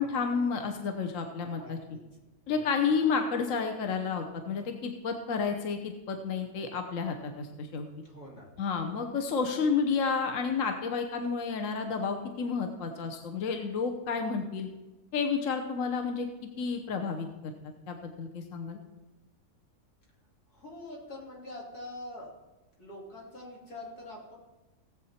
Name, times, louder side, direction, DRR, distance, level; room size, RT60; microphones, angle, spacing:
voice 1, 0.0-1.8 2.5-7.9 8.6-14.7 15.1-16.3 16.6-17.5 17.9-18.8, left 5 dB, 60° left, 5 dB, 1.3 m, -31 dB
voice 2, 1.6-2.0 2.5-2.7 8.0-8.5 20.5-22.3 22.8-24.4, left 1 dB, 85° left, -3 dB, 3.7 m, -44 dB
18.0 x 7.9 x 4.3 m, 1.1 s
omnidirectional pair, 1.6 m